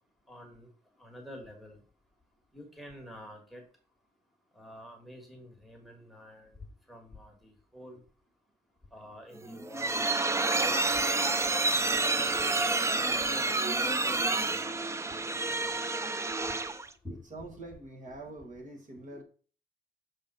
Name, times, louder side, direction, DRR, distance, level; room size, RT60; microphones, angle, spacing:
voice 1, 0.3-0.7 1.0-1.8 2.5-3.6 4.5-6.5 6.9-8.0 8.9-10.0 10.6-11.2 11.6-12.5 12.9-15.8 16.7-16.8 17.0-17.6 18.9-19.2, equal, ahead, 1.5 m, -48 dB
sound 1, 9.4-16.9, right 3 dB, 15° right, 0.4 m, -29 dB
voice 2, 17.3-19.2, right 2 dB, 45° right, 1.5 m, -44 dB
6.3 x 3.6 x 5.4 m
wide cardioid pair, 145°, 17 cm